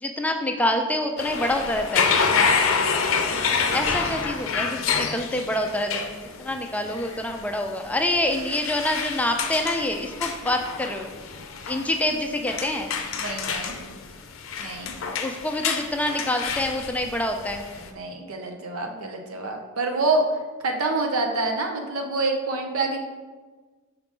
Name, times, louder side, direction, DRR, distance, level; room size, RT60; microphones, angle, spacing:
voice 1, 0.0-2.1 3.7-11.1 11.7-12.9 15.1-17.6, left 1 dB, 5° left, 4 dB, 0.4 m, -26 dB
sound 1, 1.2-17.9, left 5 dB, 65° left, 0.5 m, -28 dB
voice 2, 13.2-13.8 14.6-14.9 17.7-20.2 20.6-23.0, right 3 dB, 90° right, 3 dB, 0.9 m, -27 dB
6.3 x 4.8 x 3.7 m, 1.3 s
head